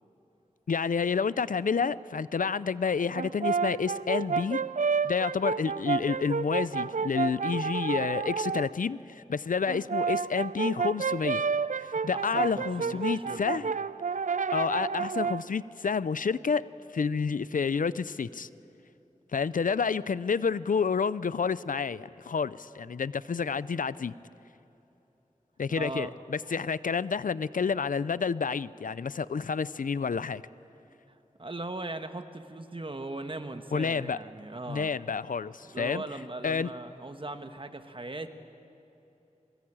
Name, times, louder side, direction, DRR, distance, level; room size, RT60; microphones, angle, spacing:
voice 1, 0.7-4.6 5.0-11.4 11.8-13.7 14.5-16.6 16.9-18.5 19.3-24.1 25.6-30.4 33.7-34.2 34.7-36.0 36.4-36.7, left 5 dB, 80° left, 17 dB, 0.5 m, -29 dB
Brass instrument, 3.1-8.7 9.7-15.5, right 5 dB, 70° right, 0.4 m, -30 dB
voice 2, 12.1-13.7 25.8-26.2 31.1-34.9 35.6-38.3, right 2 dB, 40° right, 8 dB, 1.4 m, -39 dB
22.5 x 20.5 x 8.8 m, 2.9 s
wide cardioid pair, 55°, 14 cm